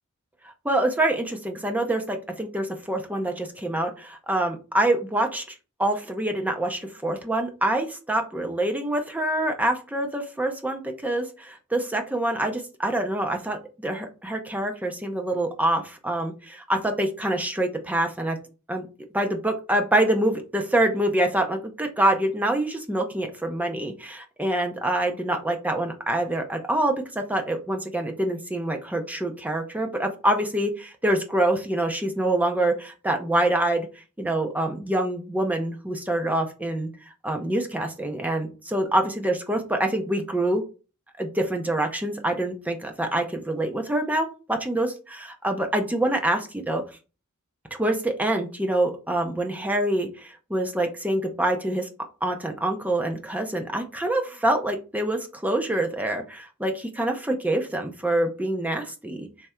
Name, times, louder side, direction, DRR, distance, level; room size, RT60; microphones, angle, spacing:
voice 1, 0.6-5.5 5.8-13.6 13.8-18.4 18.7-18.9 19.1-33.9 34.2-36.9 37.2-40.6 41.2-46.8 47.8-51.9 52.2-59.3, right 1 dB, 5° right, 4 dB, 0.6 m, -26 dB
3.5 x 3.2 x 4.3 m, 0.33 s
head